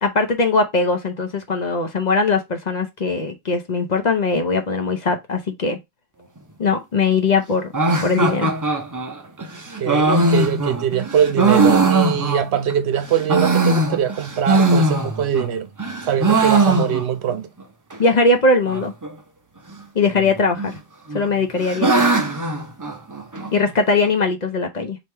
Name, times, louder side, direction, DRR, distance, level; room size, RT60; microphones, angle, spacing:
voice 1, 0.0-5.8 6.6-7.7 8.0-8.5 18.0-18.9 19.9-20.8 21.1-22.1 23.5-25.0, left 3 dB, 45° left, 0.8 m, -20 dB
sound 1, 7.7-12.7 13.1-15.5 15.8-17.3 17.6-17.7 17.9-18.0 18.7-19.1 20.1-20.7 21.1-23.5, right 3 dB, 25° right, 0.5 m, -20 dB
voice 2, 9.8-15.7 16.0-17.5, right 8 dB, 80° right, 0.9 m, -22 dB
3.4 x 2.9 x 4.3 m
omnidirectional pair, 1.1 m